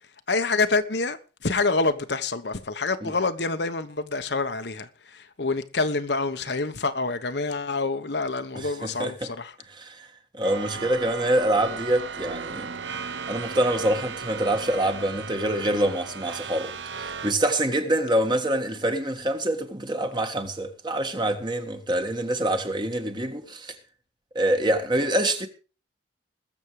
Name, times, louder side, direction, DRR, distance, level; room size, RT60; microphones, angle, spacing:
voice 1, 0.0-9.6, left 3 dB, 65° left, 1.2 m, -27 dB
voice 2, 8.5-9.3 9.8-10.1 10.3-12.7 13.3-16.7 17.0-23.7 24.3-25.5, right 1 dB, 25° right, 1.6 m, -25 dB
sound 1, 10.4-17.3, right 5 dB, 70° right, 0.8 m, -36 dB
21.0 x 7.4 x 4.8 m
head